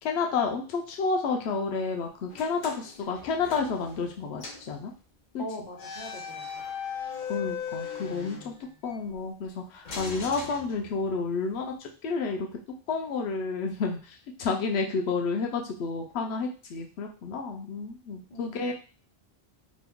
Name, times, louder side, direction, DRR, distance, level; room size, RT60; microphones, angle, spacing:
voice 1, 0.0-4.9 5.3-5.4 7.3-8.5 8.8-12.5 12.9-14.0 14.4-18.7, left 4 dB, 85° left, 2 dB, 0.8 m, -30 dB
sound 1, 2.3-4.1 4.4-4.7 5.7-9.0 9.8-11.3, left 6 dB, 50° left, 0.7 m, -38 dB
voice 2, 5.4-6.7 18.3-18.7, left 1 dB, 25° left, -5 dB, 1.2 m, -41 dB
2.9 x 2.2 x 3.5 m, 0.37 s
omnidirectional pair, 1.1 m